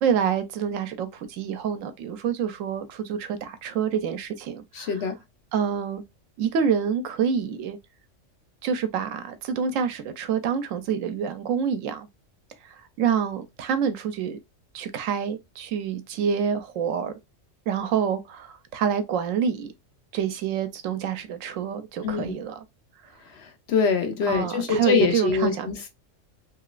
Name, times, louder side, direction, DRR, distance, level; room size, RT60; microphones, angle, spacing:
voice 1, 0.0-4.9 5.5-6.0 6.4-7.8 8.6-12.1 12.6-14.4 14.7-17.1 17.7-19.7 20.1-22.6 24.3-25.7, right 7 dB, 90° right, 1.0 m, -27 dB
voice 2, 4.7-5.1 22.0-22.4 23.4-25.9, left 5 dB, 65° left, 0.8 m, -24 dB
3.0 x 2.9 x 2.3 m
omnidirectional pair, 1.3 m